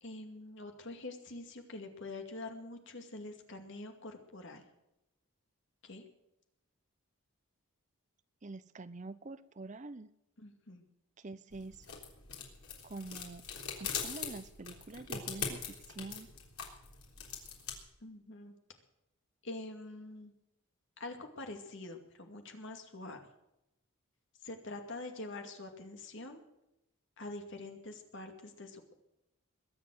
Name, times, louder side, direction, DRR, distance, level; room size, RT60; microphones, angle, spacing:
voice 1, 0.0-4.6 5.8-6.0 10.4-10.8 18.0-18.6 19.4-20.3 21.0-23.2 24.4-26.4 27.2-29.0, left 2 dB, 55° left, 5 dB, 2.3 m, -45 dB
voice 2, 8.4-10.1 11.2-11.9 12.8-13.4 13.8-16.3, right 3 dB, 35° right, 14 dB, 0.6 m, -46 dB
sound 1, 11.5-17.8, left 6 dB, 85° left, 3.7 m, -42 dB
21.5 x 7.6 x 7.8 m, 0.87 s
head